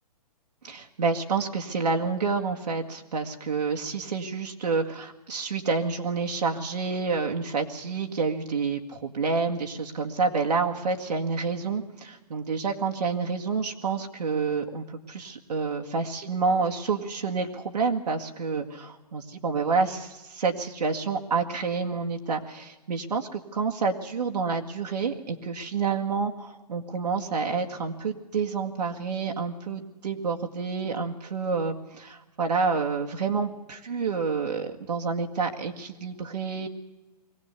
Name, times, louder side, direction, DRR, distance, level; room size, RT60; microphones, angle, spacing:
voice 1, 0.6-36.7, right 4 dB, 80° right, 3 dB, 2.0 m, -28 dB
22.5 x 17.0 x 8.3 m, 1.1 s
hypercardioid pair, 170°, 21 cm